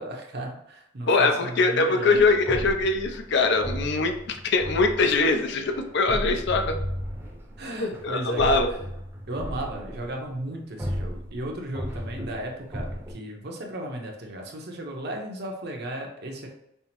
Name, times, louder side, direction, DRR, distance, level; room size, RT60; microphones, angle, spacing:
voice 1, 0.0-2.2 7.6-8.8 9.3-16.5, right 1 dB, 55° right, 2 dB, 0.8 m, -35 dB
voice 2, 1.1-6.8 7.8-8.7, left 3 dB, 60° left, 5 dB, 0.5 m, -22 dB
sound 1, 2.1-10.4 10.8-13.1, equal, 10° right, 0.7 m, -35 dB
5.4 x 2.0 x 2.9 m, 0.80 s
head